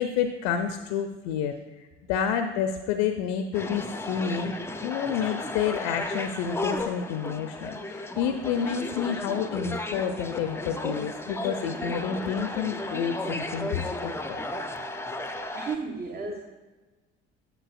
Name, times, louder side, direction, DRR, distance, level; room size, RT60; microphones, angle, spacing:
voice 1, 0.0-4.6 4.8-14.4, left 8 dB, 65° left, 7 dB, 0.6 m, -29 dB
sound 1, 3.5-15.8, left 2 dB, 10° left, 0.6 m, -34 dB
voice 2, 15.5-16.4, right 4 dB, 30° right, 2 dB, 0.9 m, -33 dB
9.0 x 7.2 x 2.4 m, 1.2 s
hypercardioid pair, 55°, 31 cm